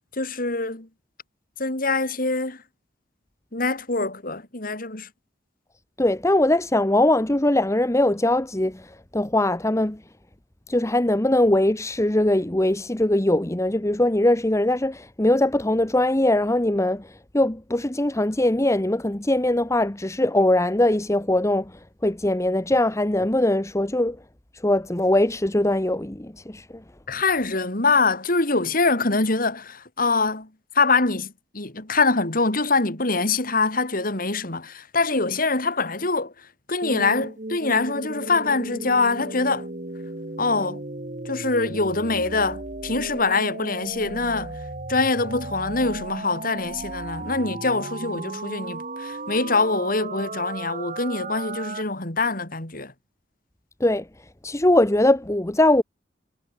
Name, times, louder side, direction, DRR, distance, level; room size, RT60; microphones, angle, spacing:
voice 1, 0.1-0.9 1.6-2.6 3.5-5.1 27.1-39.7 40.4-40.8 41.3-44.6 44.9-52.9, left 3 dB, 50° left, 3.6 m, -24 dB
voice 2, 6.0-8.8 9.1-10.0 10.7-17.1 17.3-21.7 22.0-24.2 24.6-26.6 53.8-54.0 54.4-55.8, left 1 dB, 15° left, 1.1 m, -21 dB
sound 1, 36.8-51.8, right 2 dB, 45° right, 2.0 m, -35 dB
head